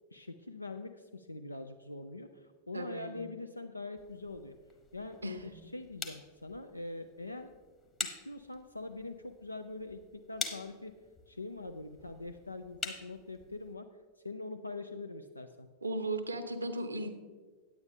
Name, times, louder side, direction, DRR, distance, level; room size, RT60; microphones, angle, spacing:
voice 1, 0.1-4.6 4.9-7.5 8.0-10.9 11.3-13.9 14.2-15.7, left 2 dB, 85° left, 8 dB, 0.3 m, -43 dB
voice 2, 2.7-3.3 5.2-5.5 15.8-17.1, right 2 dB, 80° right, 8 dB, 0.7 m, -36 dB
sound 1, 4.0-13.7, left 4 dB, 20° left, 1.1 m, -46 dB
9.5 x 8.7 x 3.7 m, 1.5 s
figure-of-eight pair, 90°, 0 cm